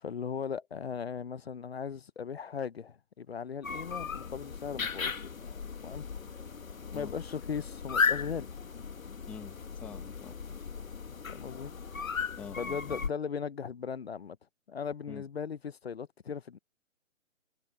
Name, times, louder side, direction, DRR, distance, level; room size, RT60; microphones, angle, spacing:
voice 1, 0.0-5.1 5.5-6.0 6.9-8.5 11.3-11.7 12.6-14.4 14.7-16.6, left 6 dB, 50° left, 1.0 m, -38 dB
sound 1, 3.6-13.1, left 5 dB, 85° left, 1.7 m, -36 dB
voice 2, 9.3-10.4 12.4-13.0 15.1-15.2, left 6 dB, 5° left, 1.5 m, -46 dB
hypercardioid pair, 170°, 40 cm